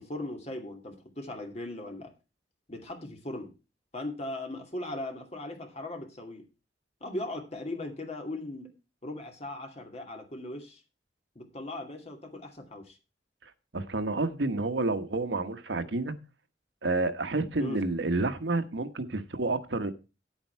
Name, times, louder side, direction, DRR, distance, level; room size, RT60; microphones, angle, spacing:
voice 1, 0.0-2.1 2.7-3.5 3.9-6.4 7.0-8.7 9.0-10.8 11.3-13.0 17.6-17.8, left 1 dB, 35° left, 2.4 m, -38 dB
voice 2, 13.7-16.2 16.8-19.9, right 2 dB, 80° right, 1.2 m, -29 dB
9.8 x 8.8 x 4.6 m
head